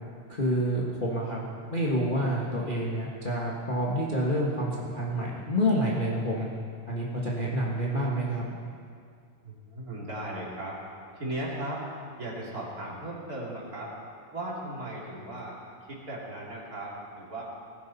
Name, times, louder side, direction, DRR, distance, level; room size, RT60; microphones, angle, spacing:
voice 1, 0.3-6.5 6.9-8.4, equal, 50° left, -5 dB, 0.6 m, -28 dB
voice 2, 9.4-11.8 12.2-13.9 14.3-17.4, right 1 dB, 30° right, -4 dB, 2.8 m, -37 dB
19.0 x 15.5 x 4.2 m, 2.2 s
omnidirectional pair, 3.7 m